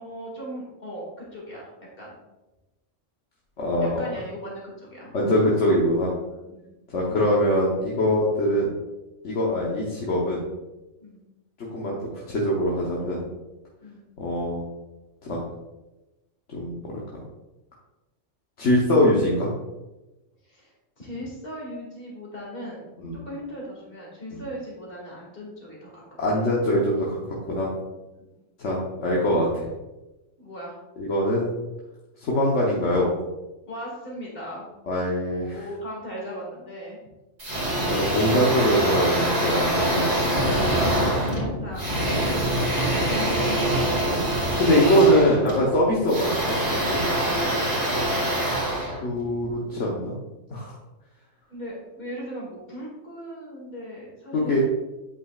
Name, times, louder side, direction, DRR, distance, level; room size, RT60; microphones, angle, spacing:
voice 1, 0.0-1.7 2.0-2.2 3.8-5.3 6.5-6.7 11.0-11.2 13.8-14.0 20.4-22.9 23.2-26.0 28.2-28.4 30.4-30.8 33.6-34.7 35.3-37.0 40.1-40.6 41.0-42.3 43.1-45.4 47.4-48.4 51.5-54.6, equal, 45° left, -3 dB, 2.4 m, -38 dB
voice 2, 3.6-4.0 5.1-6.1 6.9-8.7 9.2-10.5 11.7-13.2 14.2-14.6 15.2-15.4 16.5-17.2 18.6-19.5 23.0-23.2 26.2-27.7 28.6-29.7 31.0-31.5 32.2-33.1 34.9-35.6 37.9-40.3 41.0-41.1 44.1-44.2 44.6-47.3 49.0-50.2 50.5-50.8 54.3-54.6, equal, 70° left, -4 dB, 1.4 m, -23 dB
sound 1, 37.4-49.6, right 1 dB, 60° right, 2.3 m, -24 dB
8.3 x 5.6 x 2.4 m, 1.0 s
omnidirectional pair, 1.3 m